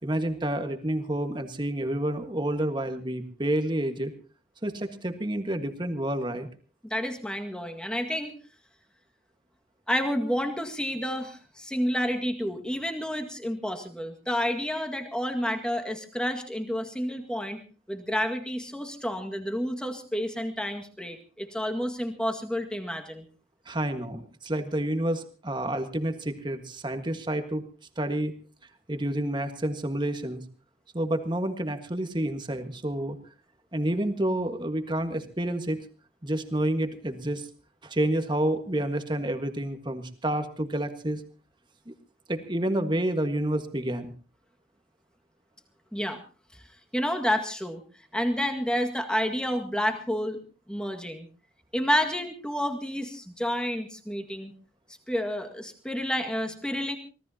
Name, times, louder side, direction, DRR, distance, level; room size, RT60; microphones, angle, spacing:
voice 1, 0.0-4.1 4.6-6.5 23.6-27.7 28.0-28.3 28.9-30.4 30.9-33.2 33.7-35.8 36.2-37.5 37.8-41.2 41.9-42.0 42.3-44.1, right 1 dB, 25° right, 7 dB, 1.6 m, -29 dB
voice 2, 6.8-8.3 9.9-17.6 17.9-23.2 45.9-46.2 46.9-47.8 48.1-50.4 50.7-51.3 51.7-54.5 55.1-57.0, equal, 5° left, 4 dB, 1.9 m, -30 dB
25.0 x 18.0 x 2.9 m, 0.36 s
head